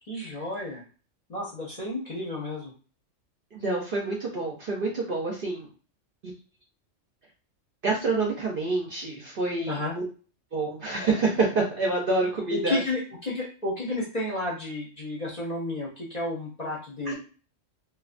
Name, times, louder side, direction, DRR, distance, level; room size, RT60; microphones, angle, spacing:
voice 1, 0.1-0.8 1.3-2.7 9.7-9.9 12.5-17.2, left 2 dB, 40° left, -5 dB, 0.7 m, -31 dB
voice 2, 3.5-5.7 6.2-6.3 7.8-10.0 10.5-12.8 17.1-17.2, right 3 dB, 55° right, -2 dB, 0.6 m, -27 dB
2.6 x 2.2 x 2.4 m, 0.37 s
omnidirectional pair, 1.3 m